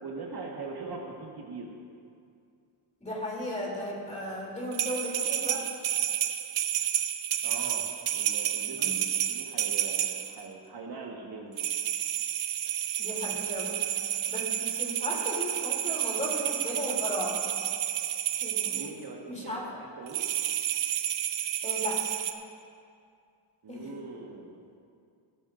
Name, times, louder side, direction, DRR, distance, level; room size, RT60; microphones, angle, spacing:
voice 1, 0.0-1.7 7.4-7.8 8.1-8.9 9.3-11.6 18.7-20.2 23.6-24.6, right 4 dB, 50° right, -1 dB, 1.4 m, -41 dB
voice 2, 3.0-5.7 8.8-8.9 13.0-13.9 14.3-17.4 18.4-18.9 19.3-19.6 21.6-22.0 23.7-23.9, left 1 dB, 15° left, -3 dB, 2.9 m, -35 dB
sound 1, 4.7-10.4 11.6-18.9 20.1-22.3, right 11 dB, 70° right, 0.8 m, -30 dB
18.0 x 12.5 x 2.5 m, 2.4 s
cardioid pair, 115°, 49 cm